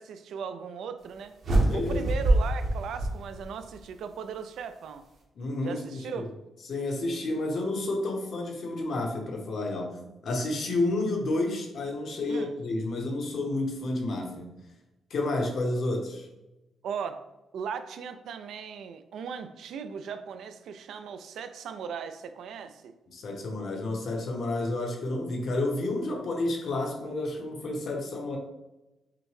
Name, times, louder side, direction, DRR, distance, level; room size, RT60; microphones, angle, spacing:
voice 1, 0.0-1.4 1.7-5.1 5.6-6.3 12.3-12.6 16.8-17.2 17.5-22.9, right 6 dB, 75° right, 9 dB, 0.3 m, -38 dB
sound 1, 1.4-3.8, right 1 dB, 55° right, 0.9 m, -25 dB
voice 2, 1.7-2.1 5.4-6.3 6.7-10.0 10.2-14.4 15.1-16.3 23.1-28.4, left 2 dB, 50° left, 1 dB, 0.8 m, -30 dB
5.8 x 2.1 x 3.2 m, 1.0 s
cardioid pair, 155°, 0 cm